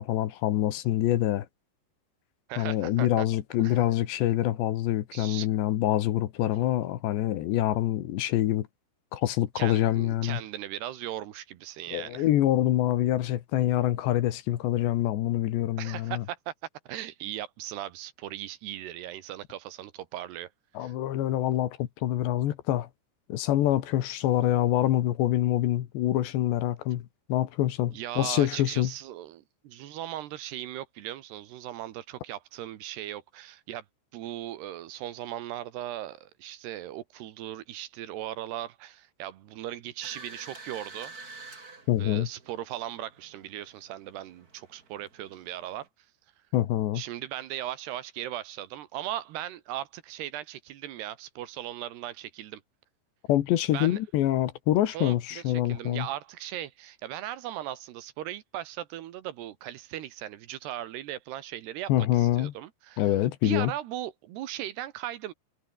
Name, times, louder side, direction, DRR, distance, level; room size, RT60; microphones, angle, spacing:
voice 1, 0.0-1.5 2.6-8.7 9.1-10.4 11.9-16.2 20.8-22.9 23.3-28.9 41.9-42.3 46.5-47.0 53.3-56.1 61.9-62.5 63.0-63.7, left 13 dB, 75° left, 3.6 m, -26 dB
voice 2, 2.5-3.3 3.6-3.8 5.1-5.5 9.6-12.3 15.8-16.5 16.9-20.5 20.8-20.9 27.9-33.8 34.1-41.1 42.0-45.9 46.9-52.6 53.7-54.0 54.9-63.2 63.4-65.3, right 13 dB, 70° right, 3.1 m, -38 dB
sound 1, 40.0-45.9, right 3 dB, 20° right, 3.4 m, -49 dB
omnidirectional pair, 5.2 m